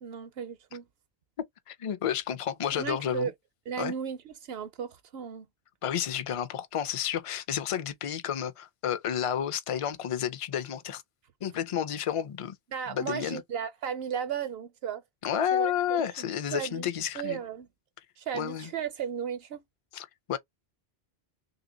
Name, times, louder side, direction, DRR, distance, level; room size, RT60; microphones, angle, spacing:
voice 1, 0.0-0.9 2.7-3.3 3.7-5.5 12.7-15.0 15.5-16.0 16.5-16.9 17.1-17.7 18.2-19.6, right 8 dB, 70° right, 0.9 m, -35 dB
voice 2, 1.7-3.3 3.8-3.9 5.8-11.0 11.4-12.6 12.9-13.4 15.2-17.4 18.3-18.7 19.9-20.4, left 9 dB, 45° left, 0.4 m, -31 dB
3.3 x 2.7 x 3.7 m
omnidirectional pair, 1.1 m